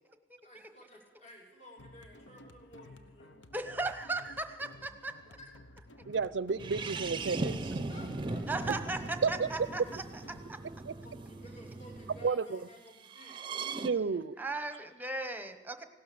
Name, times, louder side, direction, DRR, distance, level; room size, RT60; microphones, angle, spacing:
voice 1, 0.4-3.5 5.0-5.5 7.9-9.0 11.0-13.6 14.6-14.9, left 1 dB, 40° left, -1 dB, 3.1 m, -54 dB
sound 1, 1.8-10.4, left 2 dB, 90° left, 0.9 m, -55 dB
voice 2, 3.5-5.1 8.5-10.0 10.3-10.6 14.4-15.8, right 2 dB, 10° right, 8 dB, 0.9 m, -37 dB
voice 3, 6.1-7.8 8.7-8.8 9.2-9.5 10.8-10.9 12.2-12.6 13.8-14.4, right 5 dB, 70° right, 19 dB, 0.5 m, -31 dB
sound 2, 6.6-12.3 13.1-13.9, right 3 dB, 25° right, 0.6 m, -39 dB
16.5 x 12.0 x 6.8 m, 1.2 s
head